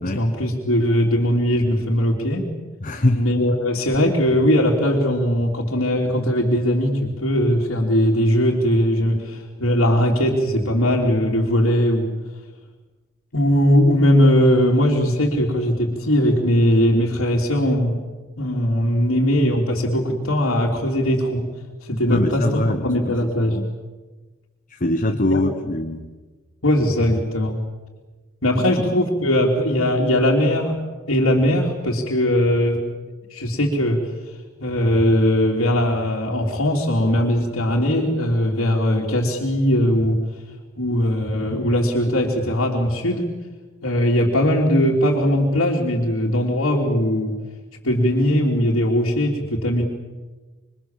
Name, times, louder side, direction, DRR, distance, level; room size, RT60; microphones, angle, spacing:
voice 1, 0.0-2.5 3.1-12.1 13.3-18.0 18.4-21.5 21.8-23.6 25.3-25.4 26.6-27.6 28.4-30.8 31.1-32.8 33.3-34.0 34.6-40.2 40.8-43.3 43.8-47.3 47.8-49.8, equal, 75° left, -4 dB, 3.3 m, -19 dB
voice 2, 2.8-3.2 22.1-23.1 23.5-23.7 24.7-26.0 28.6-28.9, left 1 dB, 40° left, 6 dB, 1.3 m, -23 dB
26.5 x 24.5 x 7.6 m, 1.3 s
head